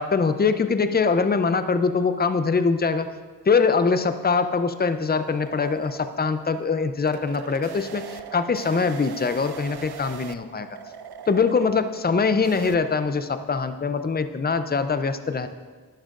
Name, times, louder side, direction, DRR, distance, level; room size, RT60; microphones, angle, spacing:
voice 1, 0.0-3.1 3.5-10.7 11.3-15.5, left 5 dB, 25° left, 10 dB, 0.4 m, -23 dB
sound 1, 3.8-12.8, right 8 dB, 70° right, 0.5 m, -41 dB
11.0 x 8.8 x 2.5 m, 1.5 s
wide cardioid pair, 55°, 39 cm